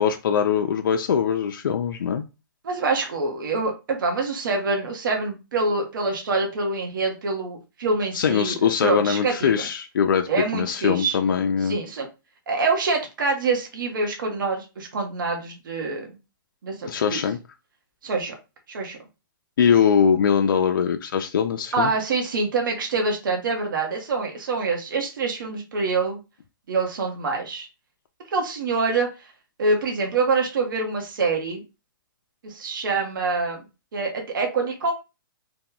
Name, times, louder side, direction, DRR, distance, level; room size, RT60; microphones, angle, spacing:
voice 1, 0.0-2.2 8.1-10.3 10.5-11.8 16.9-17.4 19.6-21.9, left 7 dB, 70° left, 0.4 m, -22 dB
voice 2, 2.6-9.5 10.3-11.2 11.6-12.1 12.5-16.1 16.6-17.2 18.0-18.3 18.7-19.0 21.7-26.2 26.7-27.7 28.3-29.1 29.6-31.6 32.4-33.6 33.9-34.9, right 3 dB, 65° right, 0.9 m, -25 dB
2.9 x 2.2 x 3.7 m
hypercardioid pair, 160°, 12 cm